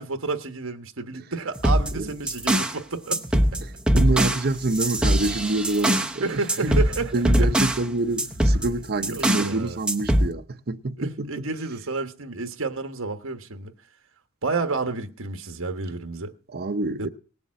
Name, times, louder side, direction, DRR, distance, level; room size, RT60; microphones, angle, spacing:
voice 1, 0.0-3.6 6.2-7.5 9.0-9.8 11.0-13.7 14.4-16.3 17.0-17.1, right 3 dB, 65° right, 1.2 m, -30 dB
sound 1, 1.6-2.8 3.1-6.2 6.5-7.9 8.2-9.5 9.9-10.3, equal, 5° right, 0.8 m, -22 dB
voice 2, 3.9-6.8 7.1-11.5 16.5-17.1, right 2 dB, 45° right, 0.7 m, -27 dB
19.0 x 7.0 x 7.6 m
head